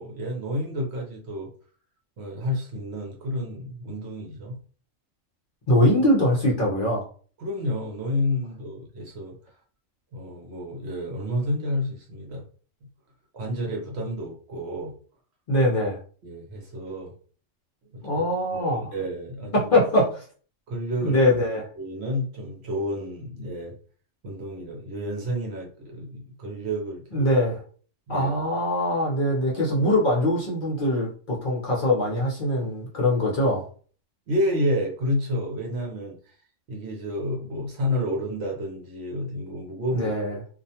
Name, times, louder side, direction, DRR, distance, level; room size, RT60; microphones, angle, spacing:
voice 1, 0.0-1.5 2.2-4.6 7.4-9.3 10.1-12.4 13.3-14.9 16.2-17.1 17.9-18.2 18.5-19.7 20.7-21.2 21.8-23.8 24.2-27.3 28.1-28.3 34.3-36.2 36.7-40.1, left 1 dB, 60° right, 0 dB, 0.9 m, -30 dB
voice 2, 5.7-7.1 15.5-16.0 18.0-18.9 19.5-20.2 21.0-21.7 27.1-27.6 28.1-33.6 40.0-40.4, left 1 dB, 50° left, -4 dB, 0.7 m, -22 dB
2.4 x 2.1 x 2.7 m, 0.43 s
omnidirectional pair, 1.4 m